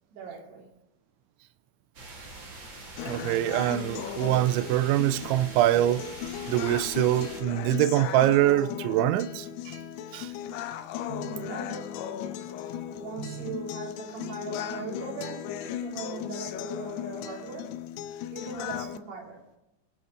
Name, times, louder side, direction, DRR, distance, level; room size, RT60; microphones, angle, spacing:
voice 1, 0.1-0.7 11.2-12.0 12.6-17.8 18.3-19.4, right 3 dB, 65° right, 5.4 m, -39 dB
sound 1, 1.9-7.4, right 2 dB, 35° right, 2.1 m, -44 dB
sound 2, 3.0-19.0, left 10 dB, 80° left, 2.5 m, -37 dB
voice 2, 3.1-6.0 6.5-9.8 10.1-10.3 11.1-11.5 13.2-13.5, right 14 dB, 90° right, 3.0 m, -25 dB
23.5 x 8.0 x 3.1 m
omnidirectional pair, 5.3 m